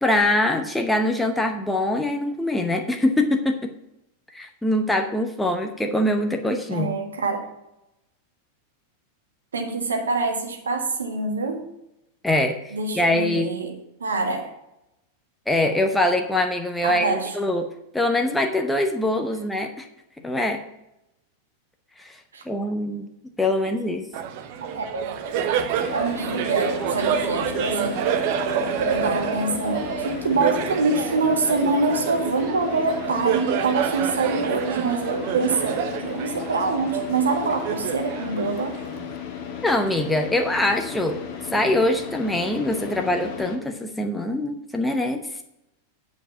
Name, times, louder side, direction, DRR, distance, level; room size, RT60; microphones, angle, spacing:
voice 1, 0.0-3.7 4.3-6.9 12.2-13.5 15.5-17.7 17.9-19.9 20.2-20.6 22.0-22.2 22.5-23.1 23.4-24.1 39.6-41.2 41.5-45.4, left 1 dB, 5° left, 3 dB, 0.9 m, -23 dB
voice 2, 6.7-7.5 9.5-11.6 12.7-13.7 14.0-14.5 16.8-17.3 22.3-22.4 24.7-25.2 25.9-28.0 28.9-38.7, right 3 dB, 70° right, 4 dB, 1.6 m, -25 dB
Laughter, 24.1-39.1, right 8 dB, 45° right, 1.0 m, -28 dB
Car / Idling, 25.8-43.6, left 7 dB, 45° left, 1.7 m, -35 dB
8.9 x 5.1 x 7.0 m, 0.88 s
figure-of-eight pair, 90°, 0 cm